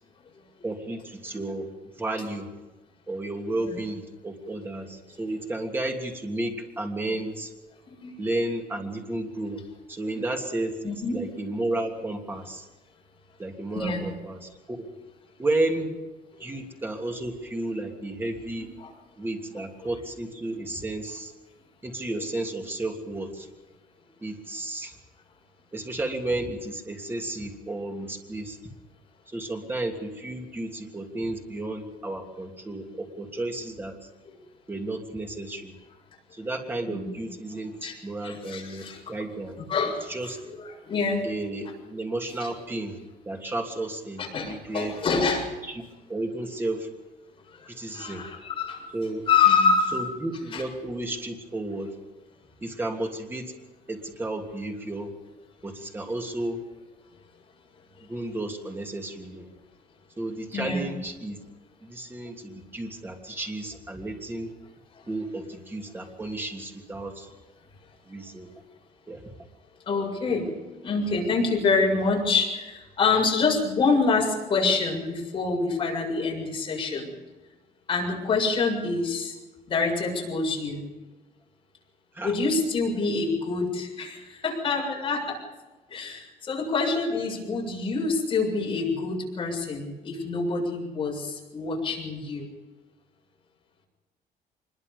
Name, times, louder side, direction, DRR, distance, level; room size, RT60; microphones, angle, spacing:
voice 1, 0.6-1.7 2.0-2.5 3.1-7.5 8.2-9.6 9.9-12.7 13.4-14.8 15.4-15.9 16.4-18.7 19.2-21.3 21.8-23.5 24.2-24.9 25.7-28.6 29.3-34.0 34.7-35.7 36.3-39.5 40.1-40.4 41.2-43.0 43.2-44.9 45.6-45.8 46.1-46.9 47.6-48.3 48.9-49.2 49.9-51.9 52.6-53.5 53.9-55.1 55.6-56.6 58.0-59.5 60.2-61.4 61.8-64.5 65.1-67.3 68.1-68.5 69.1-69.2 82.1-82.4, right 2 dB, 15° right, 2 dB, 3.1 m, -32 dB
voice 2, 10.8-11.2 13.7-14.1 16.4-16.5 18.6-18.9 34.3-34.4 36.9-37.1 37.8-38.0 38.2-39.0 39.5-41.3 42.4-42.5 44.2-45.5 47.5-48.8 49.3-50.0 50.5-50.6 60.5-60.9 69.9-70.5 70.8-77.1 77.9-79.3 79.7-80.8 82.2-85.4 85.9-92.5, left 4 dB, 35° left, 0 dB, 7.2 m, -26 dB
25.0 x 22.0 x 5.5 m, 1.2 s
cardioid pair, 165°, 16 cm